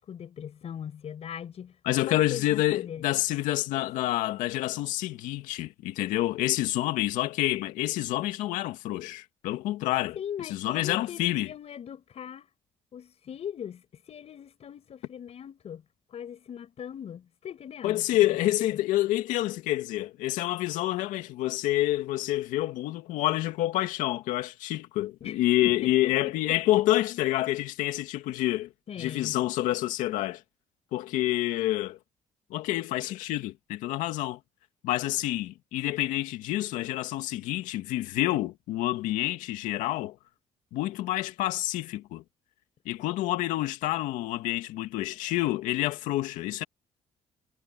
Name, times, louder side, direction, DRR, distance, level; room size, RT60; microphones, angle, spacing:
voice 1, 0.0-1.8 2.1-3.0 3.6-3.7 10.2-12.5 12.9-15.8 16.1-18.0 18.4-18.8 25.2-26.6 28.9-29.4, left 9 dB, 55° left, 5.8 m, -40 dB
voice 2, 1.9-10.2 10.5-11.5 17.8-28.7 29.0-30.4 30.9-32.0 32.5-34.4 34.8-40.2 40.7-42.2 42.9-46.6, left 15 dB, 85° left, 2.2 m, -28 dB
cardioid pair, 85°, 13 cm